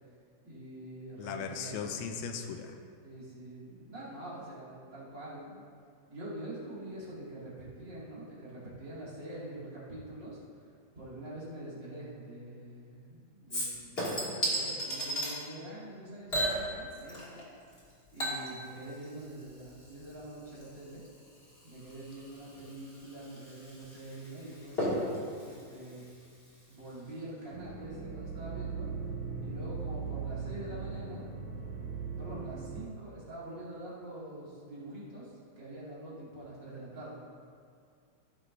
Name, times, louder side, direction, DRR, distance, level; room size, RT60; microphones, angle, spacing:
voice 1, 0.4-2.0 3.0-5.6 6.1-10.4 11.0-17.4 18.1-21.0 21.6-24.9 25.4-26.1 26.7-28.9 29.4-31.2 31.9-37.2, right 1 dB, 40° right, -8 dB, 2.9 m, -45 dB
voice 2, 1.2-2.8, left 6 dB, 80° left, 5 dB, 1.9 m, -38 dB
Chink clink / Liquid, 13.5-15.3 16.3-17.4 17.7-26.7 27.1-27.2, equal, 20° left, 2.4 m, -37 dB
sound 1, 27.5-32.9, right 5 dB, 80° right, 1.1 m, -39 dB
16.0 x 7.5 x 2.7 m, 2.2 s
omnidirectional pair, 3.3 m